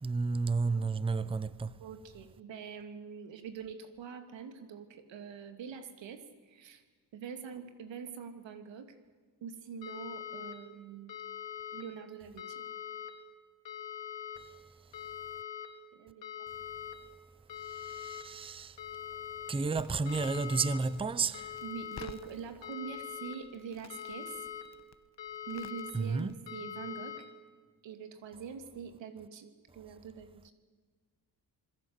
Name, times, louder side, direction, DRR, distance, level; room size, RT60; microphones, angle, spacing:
voice 1, 0.0-1.8 14.5-14.6 17.6-18.8 19.5-21.6 25.9-26.3, right 4 dB, 15° right, 0.7 m, -32 dB
voice 2, 1.8-6.8 7.1-9.0 9.4-11.2 11.7-12.6 15.9-16.2 21.6-24.4 25.4-27.2 27.8-30.5, right 7 dB, 90° right, 2.9 m, -44 dB
sound 1, 9.8-10.5 11.1-11.8 12.4-13.1 13.7-14.4 14.9-15.7 16.2-16.9 17.5-18.2 18.8-19.5 20.1-20.8 21.3-22.1 22.6-23.4 23.9-24.6 25.2-25.9 26.5-27.2, left 9 dB, 90° left, 3.5 m, -42 dB
Crackle, 19.8-26.6, left 7 dB, 40° left, 1.2 m, -54 dB
27.5 x 21.5 x 8.1 m
cardioid pair, 130°, 43 cm